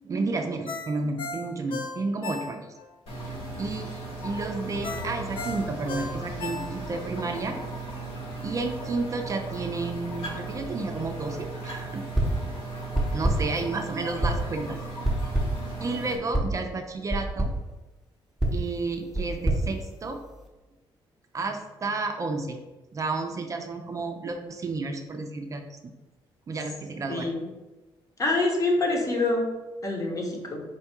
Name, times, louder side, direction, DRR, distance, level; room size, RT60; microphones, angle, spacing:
voice 1, 0.0-2.7 3.6-3.9 4.2-7.6 8.4-12.0 13.1-14.8 15.8-17.5 18.5-20.2 21.3-22.6 22.9-25.8 26.5-27.3, right 3 dB, 35° right, 5 dB, 0.4 m, -31 dB
Ringtone, 0.7-2.9 3.3-3.4 4.8-7.1 7.5-7.6, left 4 dB, 65° left, 0.5 m, -36 dB
sound 1, 3.1-16.2, right 2 dB, 80° left, 1.0 m, -36 dB
sound 2, 12.1-12.5 12.9-13.6 14.2-14.6 15.0-15.7 16.3-16.6 17.1-17.6 18.4-20.5, right 1 dB, ahead, 0.8 m, -27 dB
voice 2, 27.1-27.4 28.2-29.4 29.8-30.6, left 2 dB, 35° left, 1 dB, 0.9 m, -26 dB
4.4 x 2.3 x 4.3 m, 1.1 s
cardioid pair, 100°, 9 cm